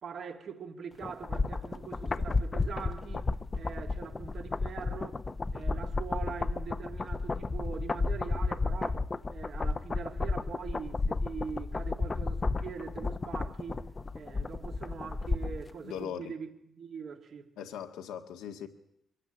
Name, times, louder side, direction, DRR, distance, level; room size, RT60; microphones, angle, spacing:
voice 1, 0.0-3.3 3.6-5.2 5.5-13.9 14.1-16.5 16.8-17.5, right 6 dB, 55° right, 1.8 m, -42 dB
sound 1, 1.0-15.7 16.0-16.1, left 3 dB, 25° left, 0.8 m, -32 dB
voice 2, 15.8-16.4 17.6-18.7, left 8 dB, 85° left, 1.8 m, -39 dB
23.5 x 14.5 x 9.8 m
cardioid pair, 90°, 0 cm